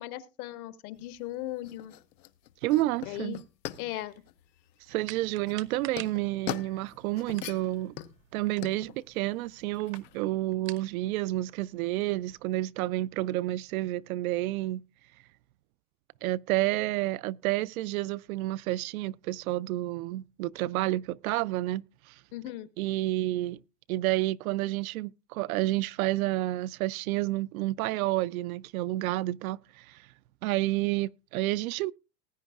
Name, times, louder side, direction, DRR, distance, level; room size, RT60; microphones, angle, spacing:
voice 1, 0.0-1.9 3.1-3.4 3.8-4.1 22.3-22.7, left 15 dB, 60° left, 1.5 m, -37 dB
sound 1, 0.9-10.2, left 13 dB, 80° left, 1.1 m, -43 dB
voice 2, 2.6-3.4 4.9-8.0 8.3-14.8 16.2-22.1 22.8-23.6 23.9-30.0 30.4-31.9, right 17 dB, 60° right, 0.5 m, -30 dB
sound 2, 5.0-12.4, right 14 dB, 80° right, 1.2 m, -51 dB
19.5 x 9.4 x 2.4 m
supercardioid pair, 130°, 49 cm